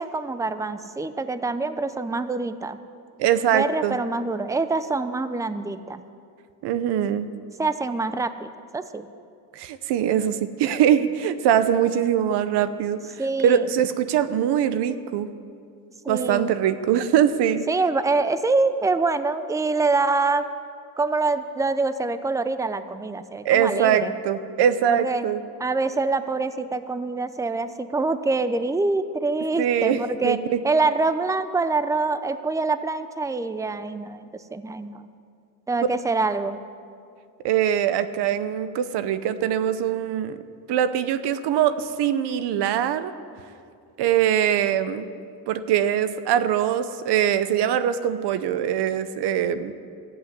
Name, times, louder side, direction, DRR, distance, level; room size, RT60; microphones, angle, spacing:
voice 1, 0.0-2.8 3.5-6.0 7.6-9.1 13.2-13.7 16.0-16.5 17.7-20.5 21.0-24.1 24.9-25.3 25.6-30.4 30.6-35.1 35.7-36.6, right 3 dB, 10° right, 12 dB, 0.6 m, -25 dB
voice 2, 3.2-4.0 6.6-7.3 9.6-13.0 13.4-15.3 16.1-17.6 23.4-25.4 29.6-30.6 37.4-40.4 40.7-43.1 44.0-45.1 45.5-49.7, right 9 dB, 90° right, 12 dB, 0.8 m, -22 dB
12.5 x 8.1 x 9.4 m, 2.4 s
cardioid pair, 90°, 39 cm